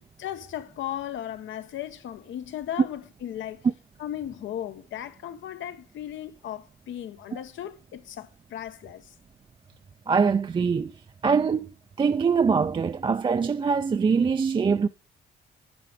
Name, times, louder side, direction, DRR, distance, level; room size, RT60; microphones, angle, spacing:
voice 1, 0.2-3.6 4.0-9.1, left 11 dB, 75° left, 0.9 m, -36 dB
voice 2, 10.1-10.9 11.2-11.7 12.0-14.9, right 5 dB, 25° right, 0.4 m, -23 dB
10.5 x 6.0 x 4.9 m
cardioid pair, 90°, 20 cm